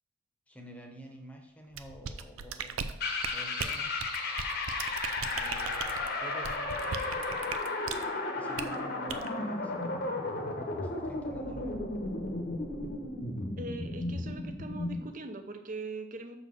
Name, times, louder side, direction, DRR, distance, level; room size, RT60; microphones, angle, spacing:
voice 1, 0.5-2.8 3.3-4.1 5.2-7.5 8.3-9.7 10.3-11.8, right 1 dB, 5° left, 2 dB, 1.0 m, -49 dB
sound 1, 1.7-8.1 8.6-8.8 9.1-9.3, right 7 dB, 85° right, 0.5 m, -38 dB
sound 2, 3.0-15.1, left 2 dB, 50° left, 1.0 m, -34 dB
voice 2, 13.6-16.4, right 2 dB, 40° right, 7 dB, 0.7 m, -41 dB
6.3 x 4.1 x 6.3 m, 0.86 s
head